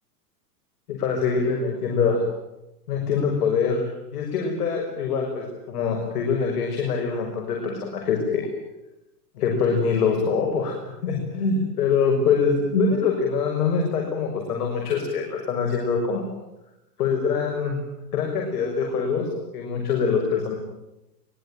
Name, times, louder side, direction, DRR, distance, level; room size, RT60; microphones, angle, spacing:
voice 1, 0.9-2.2 2.9-8.5 9.4-10.7 11.0-16.3 17.0-17.7 18.1-20.5, left 5 dB, 70° left, 2 dB, 6.6 m, -24 dB
24.5 x 21.5 x 9.1 m, 0.92 s
hypercardioid pair, 145°, 48 cm